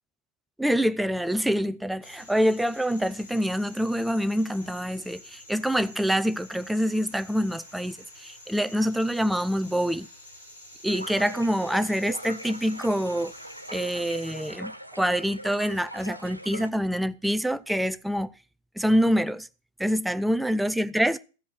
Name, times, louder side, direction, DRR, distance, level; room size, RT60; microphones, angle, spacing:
voice 1, 0.6-10.1 10.8-13.3 13.7-18.4 18.8-19.5 19.8-21.2, equal, ahead, 0.5 m, -26 dB
sound 1, 2.0-14.5, left 1 dB, 85° left, 5.8 m, -49 dB
sound 2, 10.9-16.7, equal, 90° right, 0.7 m, -41 dB
14.5 x 5.2 x 5.9 m
figure-of-eight pair, 90°, 0 cm